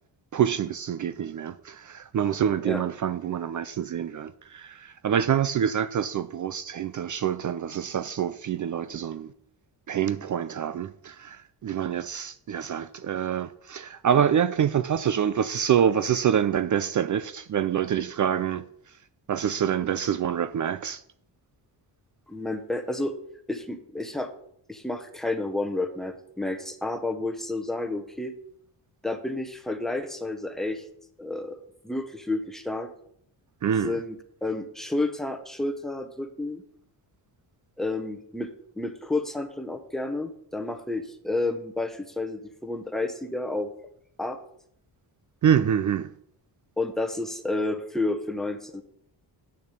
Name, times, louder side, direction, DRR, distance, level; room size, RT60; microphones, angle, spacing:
voice 1, 0.3-9.3 9.9-18.6 19.3-21.0 33.6-34.0 45.4-46.1, right 9 dB, 45° right, 0.5 m, -26 dB
voice 2, 22.3-23.1 23.5-24.3 24.7-28.3 29.0-30.8 31.2-31.6 31.8-32.9 33.8-34.2 34.4-36.6 37.8-38.5 38.8-43.7 44.2-44.4 46.8-48.8, left 2 dB, ahead, 1.0 m, -30 dB
8.7 x 6.8 x 7.5 m
wide cardioid pair, 150°, 44 cm